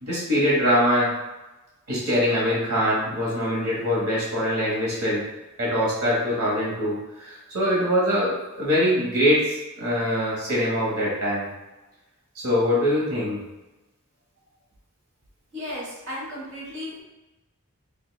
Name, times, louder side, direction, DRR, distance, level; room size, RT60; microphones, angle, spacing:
voice 1, 0.0-1.1 1.9-5.2 5.6-11.5 12.3-13.4, equal, 80° right, -6 dB, 1.2 m, -23 dB
voice 2, 15.5-17.0, left 1 dB, 55° right, -6 dB, 1.2 m, -34 dB
5.2 x 2.3 x 2.2 m, 1.1 s
head